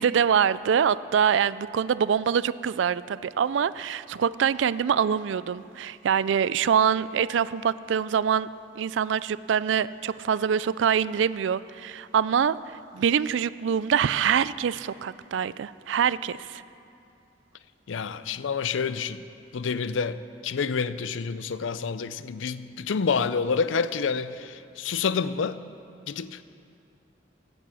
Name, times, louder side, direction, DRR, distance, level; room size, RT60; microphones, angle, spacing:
voice 1, 0.0-8.5 8.8-16.6, right 7 dB, 75° right, 18 dB, 0.3 m, -25 dB
voice 2, 17.9-19.2 19.5-25.6 26.1-26.4, left 5 dB, 90° left, 14 dB, 0.5 m, -28 dB
16.0 x 9.8 x 6.2 m, 2.6 s
head